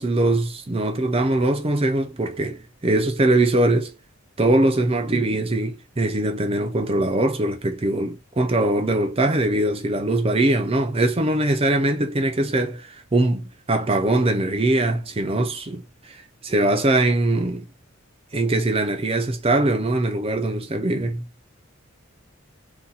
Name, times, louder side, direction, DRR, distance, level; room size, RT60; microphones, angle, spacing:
voice 1, 0.0-3.9 4.4-15.8 16.4-17.6 18.3-21.2, right 2 dB, 25° right, 0.6 m, -22 dB
2.8 x 2.4 x 3.8 m
head